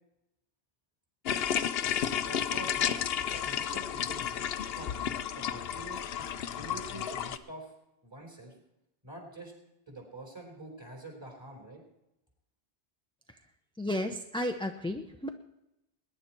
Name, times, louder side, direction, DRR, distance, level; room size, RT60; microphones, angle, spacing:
sound 1, 1.3-7.4, left 9 dB, 65° left, 0.9 m, -32 dB
voice 1, 2.1-3.0 3.3-7.7 8.0-8.6 9.0-9.5 9.9-11.8, right 1 dB, 25° right, 0 dB, 4.3 m, -46 dB
voice 2, 13.8-15.3, left 1 dB, 5° left, 5 dB, 0.5 m, -33 dB
21.5 x 10.5 x 4.4 m, 0.89 s
omnidirectional pair, 1.1 m